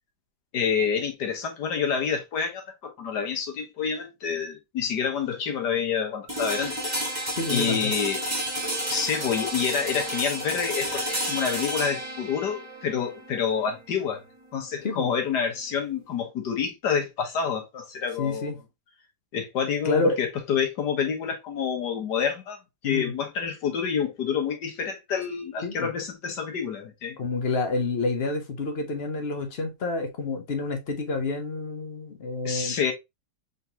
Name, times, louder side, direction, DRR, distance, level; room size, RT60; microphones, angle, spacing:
voice 1, 0.5-6.8 7.5-8.2 8.9-14.2 14.5-18.5 19.3-22.6 22.8-27.2 32.5-32.9, left 7 dB, 85° left, 1.7 m, -28 dB
sound 1, 6.3-16.2, equal, 15° right, 1.3 m, -32 dB
voice 2, 7.4-7.9 14.8-15.1 18.2-18.6 19.8-20.2 22.8-23.1 25.6-25.9 27.2-32.8, left 3 dB, 45° left, 1.0 m, -28 dB
4.0 x 3.7 x 2.8 m
omnidirectional pair, 1.8 m